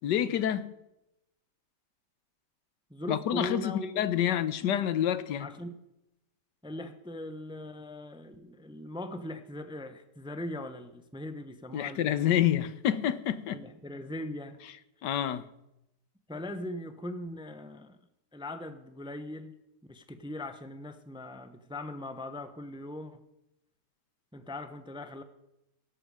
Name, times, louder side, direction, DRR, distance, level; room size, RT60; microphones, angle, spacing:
voice 1, 0.0-0.7 3.1-5.5 11.7-13.6 15.0-15.5, left 10 dB, 90° left, 1.5 m, -28 dB
voice 2, 2.9-4.4 5.4-5.8 6.6-12.3 13.5-14.6 16.3-18.0 18.3-19.6 19.8-23.2 24.3-25.2, left 1 dB, 5° right, 0.7 m, -40 dB
17.0 x 13.0 x 4.9 m
omnidirectional pair, 1.8 m